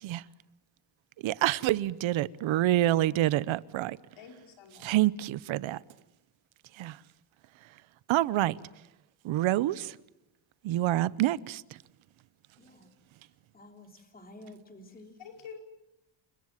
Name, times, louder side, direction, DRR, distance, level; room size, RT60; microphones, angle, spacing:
voice 1, 1.2-4.0 4.8-5.8 6.8-7.0 8.1-8.5 9.2-9.9 10.6-11.6, right 14 dB, 80° right, 0.9 m, -27 dB
voice 2, 4.2-5.0 15.2-15.6, left 6 dB, 80° left, 5.1 m, -47 dB
voice 3, 12.6-12.9 13.5-15.2, left 1 dB, 20° left, 3.3 m, -51 dB
29.5 x 21.5 x 7.4 m
cardioid pair, 145°, 46 cm